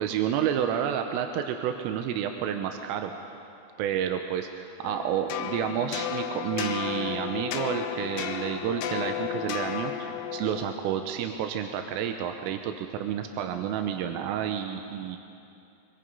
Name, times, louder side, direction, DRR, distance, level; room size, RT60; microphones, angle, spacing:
voice 1, 0.0-3.1 3.8-15.2, right 9 dB, 90° right, 5 dB, 3.5 m, -30 dB
sound 1, 4.8-10.7, left 9 dB, 75° left, 2.6 m, -33 dB
25.0 x 24.5 x 5.5 m, 2.7 s
omnidirectional pair, 5.7 m